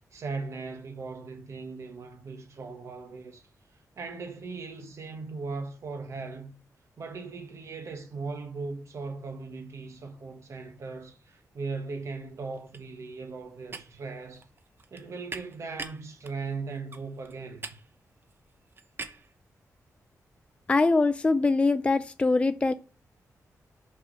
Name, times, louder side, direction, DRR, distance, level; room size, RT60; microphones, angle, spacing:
voice 1, 0.1-3.5 4.0-6.6 7.0-14.4 14.9-17.7, right 4 dB, 55° right, 1.4 m, -38 dB
sound 1, 11.5-11.9 12.1-19.3, right 3 dB, 35° right, 0.8 m, -44 dB
voice 2, 20.7-22.7, left 3 dB, 20° left, 0.4 m, -23 dB
5.7 x 4.8 x 5.6 m
wide cardioid pair, 155°, 6 cm